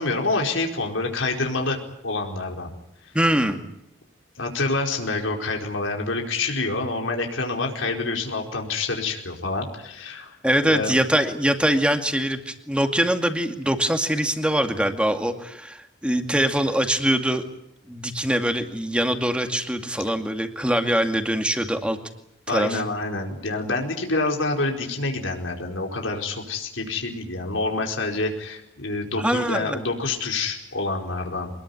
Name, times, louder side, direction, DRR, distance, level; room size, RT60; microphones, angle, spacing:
voice 1, 0.0-1.8 2.0-2.7 3.0-3.1 4.4-10.4 10.6-10.9 22.5-31.5, left 3 dB, 90° left, 2 dB, 4.7 m, -27 dB
voice 2, 3.1-3.6 10.4-17.4 17.9-22.0 22.5-22.8 29.2-29.8, right 1 dB, 5° right, 6 dB, 2.2 m, -23 dB
25.0 x 21.0 x 9.6 m, 0.79 s
head